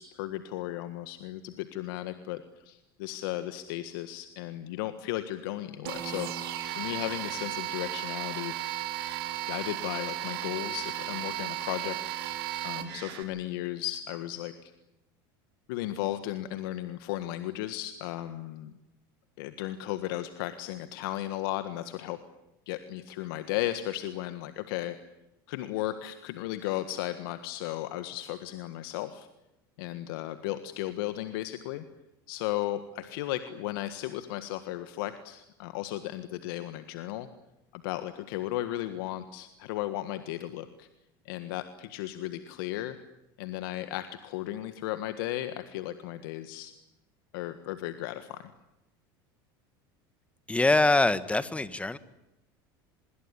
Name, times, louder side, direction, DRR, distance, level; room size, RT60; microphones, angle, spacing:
voice 1, 0.0-6.3 6.7-8.5 9.5-12.0 12.3-14.7 15.7-18.7 19.4-22.2 22.7-25.0 25.5-29.3 29.8-31.8 32.3-37.3 37.7-40.9 41.2-43.0 43.4-46.7 47.3-48.5, left 14 dB, 75° left, 10 dB, 1.6 m, -35 dB
sound 1, 5.9-13.2, right 13 dB, 80° right, 3.7 m, -35 dB
voice 2, 50.5-52.0, left 2 dB, 10° left, 14 dB, 1.7 m, -24 dB
25.0 x 22.0 x 10.0 m, 0.92 s
hypercardioid pair, 95°, 12 cm